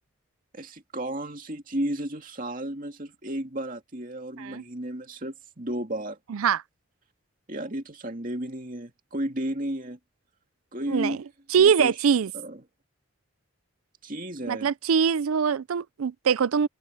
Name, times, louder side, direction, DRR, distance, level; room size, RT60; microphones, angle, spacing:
voice 1, 0.5-6.2 7.5-10.0 10.7-11.2 11.6-11.9 12.3-12.6 14.0-14.7, right 1 dB, 40° right, 2.5 m, -33 dB
voice 2, 6.3-6.6 10.9-11.2 11.5-12.3 14.5-16.7, right 7 dB, 80° right, 0.4 m, -23 dB
open air
head